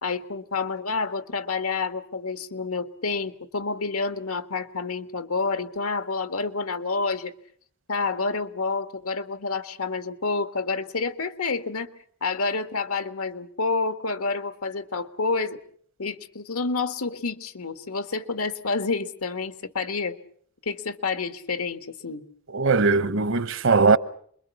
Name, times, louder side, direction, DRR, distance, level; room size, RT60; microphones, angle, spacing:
voice 1, 0.0-7.3 7.9-11.9 12.2-15.6 16.0-20.2 20.6-22.2 23.0-23.1, left 4 dB, 85° left, 1.7 m, -29 dB
voice 2, 22.5-24.0, right 4 dB, 60° right, 1.0 m, -20 dB
28.0 x 22.0 x 7.2 m
head